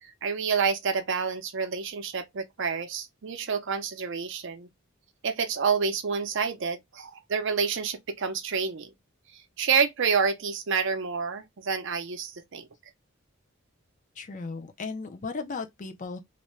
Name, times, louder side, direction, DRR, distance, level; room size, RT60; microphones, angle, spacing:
voice 1, 0.0-4.7 5.2-8.9 9.3-12.7, right 5 dB, 60° right, 0.6 m, -28 dB
voice 2, 14.2-16.2, left 4 dB, 40° left, 0.5 m, -36 dB
2.5 x 2.2 x 3.0 m
head